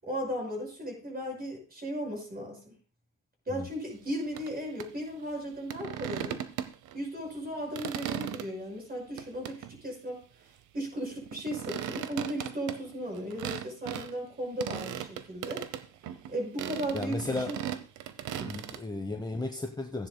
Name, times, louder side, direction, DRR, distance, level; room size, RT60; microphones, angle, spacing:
voice 1, 0.0-2.7 3.5-6.4 6.9-10.2 10.7-15.7 16.3-17.6 18.3-18.6, equal, 30° right, 2 dB, 5.7 m, -36 dB
sound 1, 4.3-4.5 4.8-4.9 5.7-7.0 7.4-8.5 9.2-9.8 11.2-14.1 14.6-16.3 16.6-18.8, right 10 dB, 80° right, 0.9 m, -37 dB
voice 2, 16.9-17.5 18.4-20.1, left 2 dB, 15° left, 4 dB, 1.1 m, -34 dB
15.5 x 10.0 x 2.2 m, 0.37 s
cardioid pair, 90°, 30 cm